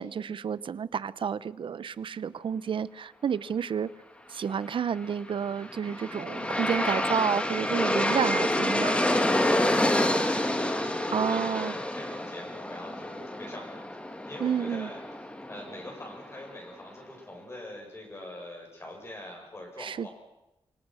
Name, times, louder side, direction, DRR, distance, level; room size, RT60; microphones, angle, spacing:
voice 1, 0.0-3.9 4.3-9.0 11.1-11.8 14.4-14.9 19.8-20.1, right 7 dB, 65° right, 18 dB, 0.8 m, -30 dB
Aircraft, 5.4-16.5, left 1 dB, 10° left, 1.9 m, -28 dB
voice 2, 9.8-13.9 14.3-15.0 15.5-20.1, left 1 dB, 30° left, 0 dB, 7.6 m, -43 dB
25.5 x 25.5 x 6.4 m, 0.93 s
wide cardioid pair, 150°, 9 cm